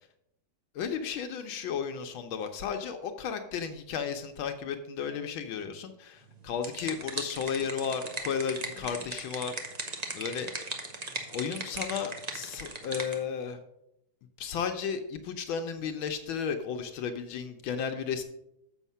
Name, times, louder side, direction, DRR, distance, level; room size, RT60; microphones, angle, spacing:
voice 1, 0.7-9.6 10.1-10.5 11.3-13.6 14.4-18.2, left 7 dB, 75° left, 6 dB, 1.4 m, -34 dB
sound 1, 6.3-13.2, right 3 dB, 55° right, 0.4 m, -38 dB
7.2 x 6.4 x 5.5 m, 0.82 s
omnidirectional pair, 2.3 m